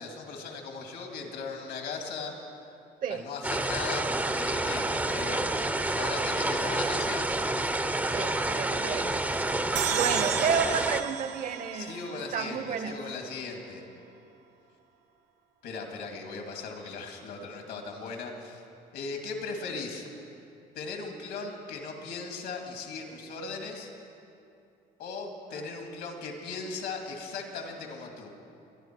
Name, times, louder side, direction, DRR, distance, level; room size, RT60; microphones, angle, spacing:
voice 1, 0.0-2.4 3.1-5.5 6.0-7.3 9.9-10.5 11.7-13.8 15.6-18.6 18.9-20.1 20.7-23.9 25.0-28.3, left 4 dB, 75° left, 2 dB, 2.3 m, -38 dB
sound 1, 3.4-11.0, right 2 dB, 10° right, 0.6 m, -29 dB
voice 2, 8.1-9.2 9.9-13.0 25.5-25.6, right 6 dB, 55° right, 10 dB, 1.0 m, -31 dB
sound 2, 9.8-13.1, right 10 dB, 85° right, 0.7 m, -34 dB
22.5 x 11.0 x 4.6 m, 2.6 s
cardioid pair, 110°, 17 cm